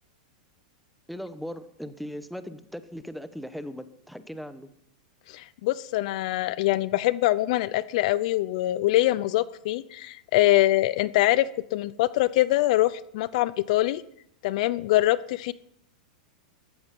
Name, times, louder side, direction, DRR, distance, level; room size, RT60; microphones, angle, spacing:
voice 1, 1.1-4.7, equal, ahead, 11 dB, 1.1 m, -38 dB
voice 2, 5.3-14.0 14.4-15.5, left 16 dB, 60° left, 18 dB, 0.6 m, -24 dB
15.5 x 14.0 x 5.5 m, 0.71 s
hypercardioid pair, 130°, 4 cm